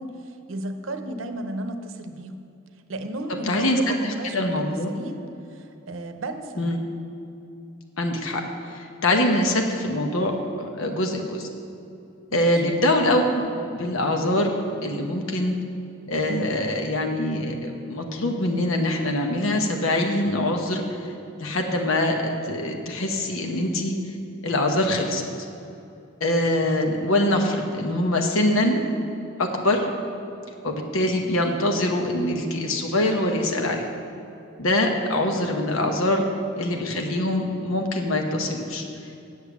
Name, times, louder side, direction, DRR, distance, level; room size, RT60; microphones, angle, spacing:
voice 1, 0.0-2.4 2.9-5.2 5.5-6.8 12.3-12.6, right 1 dB, 75° right, 7 dB, 0.7 m, -34 dB
voice 2, 3.5-3.8 4.3-4.9 6.6-6.8 8.0-8.4 8.7-10.3 10.6-11.5 12.3-14.5 14.8-15.6 16.1-21.1 21.4-23.9 24.4-25.3 26.2-28.8 29.4-29.9 30.6-33.8 34.6-36.2 36.6-38.8, left 1 dB, 80° left, 3 dB, 0.9 m, -24 dB
8.4 x 6.5 x 7.1 m, 2.7 s
head